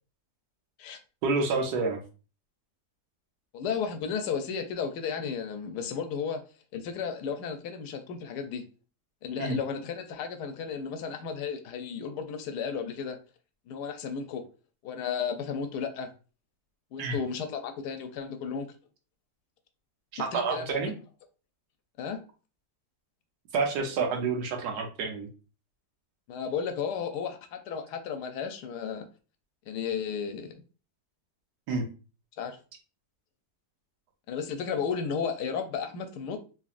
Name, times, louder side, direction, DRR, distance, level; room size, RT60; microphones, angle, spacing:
voice 1, 1.2-2.0 9.4-9.6 17.0-17.2 20.2-20.9 23.5-25.3 31.7-31.9, right 4 dB, 80° right, 1.4 m, -28 dB
voice 2, 3.5-6.4 6.7-8.6 9.2-13.2 13.7-14.5 14.8-16.1 16.9-18.7 20.3-20.9 22.0-22.2 26.3-29.1 29.7-30.6 32.4-32.6 34.3-36.4, left 6 dB, 85° left, 1.2 m, -33 dB
3.9 x 3.0 x 2.4 m
omnidirectional pair, 1.7 m